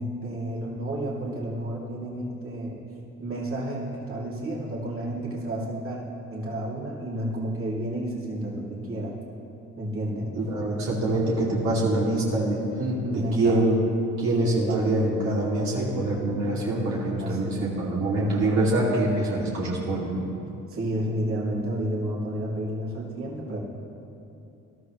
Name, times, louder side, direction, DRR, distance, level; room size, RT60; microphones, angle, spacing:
voice 1, 0.0-2.8 3.2-6.0 6.3-9.2 9.8-10.3 10.7-10.8 12.8-13.6 14.3-14.9 16.2-16.4 17.2-17.7 18.2-18.5 20.7-23.6, right 1 dB, 45° right, -5 dB, 2.8 m, -31 dB
voice 2, 10.3-12.6 13.1-13.8 14.2-20.2, right 2 dB, 65° right, -6 dB, 2.6 m, -25 dB
20.5 x 12.5 x 3.1 m, 2.8 s
cardioid pair, 90°, 30 cm